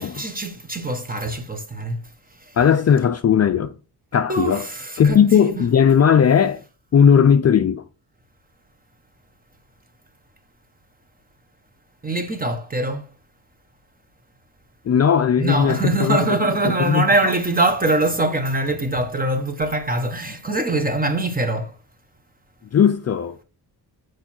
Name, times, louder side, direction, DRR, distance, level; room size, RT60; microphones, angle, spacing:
voice 1, 0.0-2.0 4.3-5.6 12.0-13.0 15.4-21.7, right 2 dB, 20° right, 1.3 m, -23 dB
voice 2, 2.6-3.8 4.1-4.7 5.0-6.6 6.9-7.8 14.8-16.4 16.6-17.3 22.7-23.4, left 7 dB, 40° left, 0.5 m, -17 dB
6.8 x 4.8 x 4.4 m
cardioid pair, 100°, 40 cm